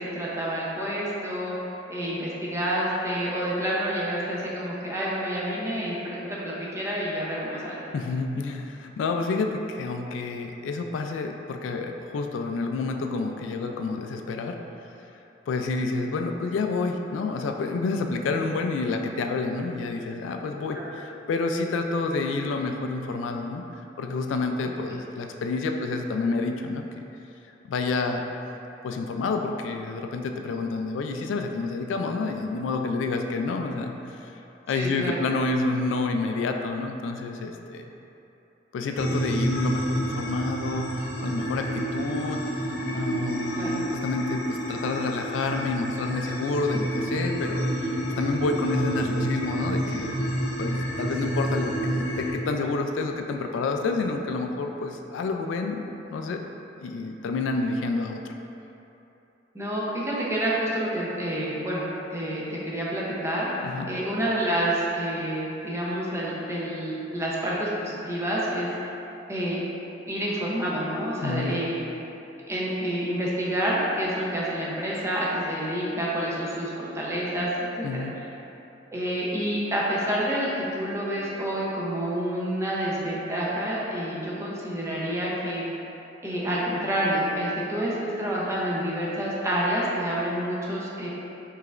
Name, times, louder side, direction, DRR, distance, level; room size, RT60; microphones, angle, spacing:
voice 1, 0.0-1.6 1.9-7.8 20.7-20.9 24.8-24.9 34.7-35.2 43.5-43.7 59.5-61.8 62.1-63.6 63.9-68.7 69.3-69.6 70.1-71.9 72.5-77.6 78.2-78.3 78.9-85.6 86.2-91.1, right 1 dB, 15° right, -6 dB, 0.6 m, -28 dB
voice 2, 7.9-14.6 15.5-23.7 24.0-27.0 27.7-28.2 28.8-34.4 34.7-37.8 38.7-42.4 42.9-50.1 50.6-55.8 56.1-56.4 56.8-58.2 63.6-63.9 71.2-71.6 77.8-78.1, left 3 dB, 85° left, 5 dB, 0.3 m, -29 dB
sound 1, 39.0-52.3, right 1 dB, 65° left, 0.8 m, -29 dB
4.8 x 3.3 x 2.4 m, 2.9 s
head